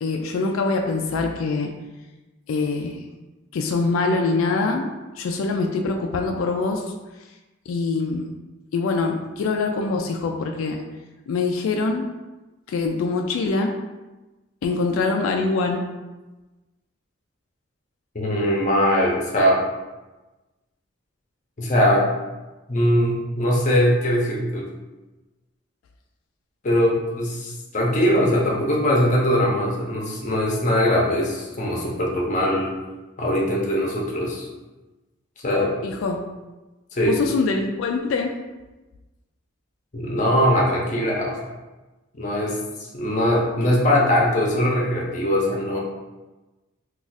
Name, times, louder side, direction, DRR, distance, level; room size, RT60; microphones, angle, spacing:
voice 1, 0.0-1.7 2.5-3.0 3.5-6.8 7.7-8.3 8.7-10.8 11.3-12.1 12.7-13.7 14.6-15.9 35.8-36.2 37.0-38.3, left 3 dB, 85° left, 3 dB, 0.3 m, -24 dB
voice 2, 18.1-19.6 21.6-22.1 22.7-24.7 26.6-32.7 33.2-34.5 35.4-35.7 36.9-37.2 39.9-41.5 42.1-42.6 42.9-45.8, equal, 35° left, -2 dB, 0.6 m, -21 dB
2.4 x 2.4 x 4.0 m, 1.1 s
head